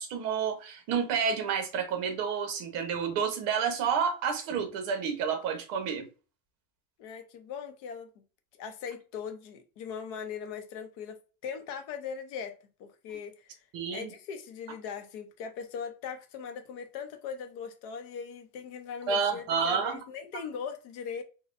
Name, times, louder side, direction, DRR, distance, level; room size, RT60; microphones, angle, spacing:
voice 1, 0.0-6.1 13.7-14.1 19.1-20.0, right 6 dB, 45° right, 0.9 m, -30 dB
voice 2, 7.0-8.1 8.6-12.5 12.8-13.5 13.9-21.2, left 6 dB, 45° left, 0.7 m, -40 dB
4.1 x 2.2 x 2.5 m
supercardioid pair, 160°, 46 cm